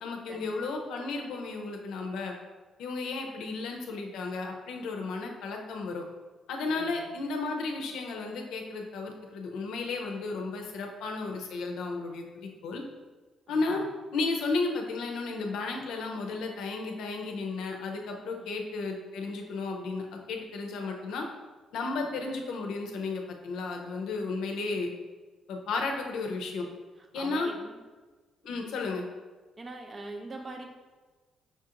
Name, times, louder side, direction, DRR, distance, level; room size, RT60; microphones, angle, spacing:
voice 1, 0.0-2.3 2.8-6.0 6.5-12.8 13.5-13.8 14.1-21.3 21.7-24.9 25.5-26.7 27.1-27.5 28.4-29.1, left 3 dB, 85° left, 2 dB, 0.5 m, -33 dB
voice 2, 6.7-7.1 13.5-13.8 18.4-18.5 22.0-22.1 27.1-27.8 28.5-28.7 29.6-30.7, right 2 dB, 35° right, 3 dB, 0.6 m, -43 dB
5.7 x 2.4 x 2.8 m, 1.3 s
cardioid pair, 90°, 0 cm